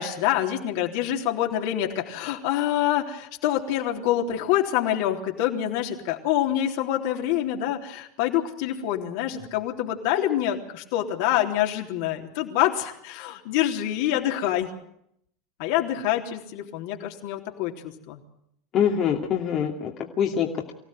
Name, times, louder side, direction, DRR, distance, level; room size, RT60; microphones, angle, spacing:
voice 1, 0.0-14.7 15.6-18.2, left 12 dB, 65° left, 2 dB, 3.6 m, -26 dB
voice 2, 18.7-20.7, left 8 dB, 45° left, 0 dB, 2.6 m, -25 dB
25.0 x 16.5 x 9.2 m, 0.74 s
hypercardioid pair, 85°, 0 cm